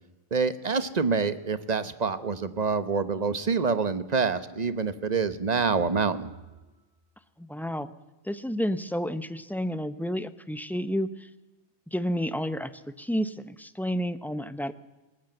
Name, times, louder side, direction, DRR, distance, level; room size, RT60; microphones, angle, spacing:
voice 1, 0.3-6.3, right 5 dB, 40° right, 13 dB, 1.1 m, -26 dB
sound 1, 5.0-6.8, right 2 dB, 90° right, 6.4 m, -51 dB
voice 2, 7.4-7.9 8.2-11.3 11.9-12.7 13.0-14.7, equal, ahead, 12 dB, 0.7 m, -30 dB
19.5 x 19.5 x 7.9 m, 1.1 s
omnidirectional pair, 1.1 m